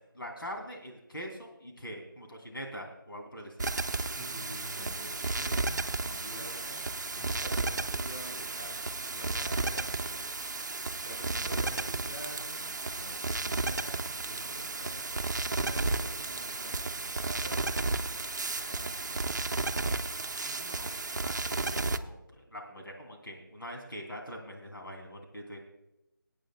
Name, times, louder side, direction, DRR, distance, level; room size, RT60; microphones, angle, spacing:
voice 1, 0.1-3.7 20.4-25.7, equal, 85° left, 1 dB, 2.9 m, -43 dB
sound 1, 3.6-22.0, right 3 dB, 55° right, 0.6 m, -33 dB
voice 2, 4.1-10.3 11.0-19.4, equal, 25° left, -4 dB, 4.0 m, -47 dB
26.0 x 8.9 x 2.2 m, 0.89 s
figure-of-eight pair, 175°, 11 cm